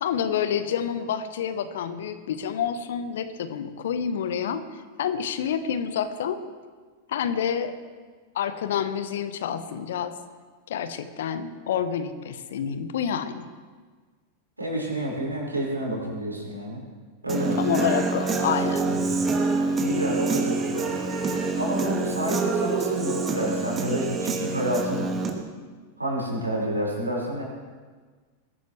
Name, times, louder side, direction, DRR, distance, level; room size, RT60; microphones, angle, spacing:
voice 1, 0.0-4.6 5.0-6.4 7.1-7.7 8.3-10.1 10.7-13.5 17.6-18.8, left 8 dB, 60° left, 11 dB, 1.1 m, -28 dB
voice 2, 14.6-16.8 17.2-17.6 18.8-19.1 19.8-20.9 21.6-25.1 26.0-27.4, right 1 dB, 85° right, -3 dB, 5.3 m, -29 dB
Human voice / Guitar, 17.3-25.3, right 3 dB, 20° right, 2.2 m, -26 dB
21.5 x 15.0 x 3.3 m, 1.4 s
figure-of-eight pair, 90°, 0 cm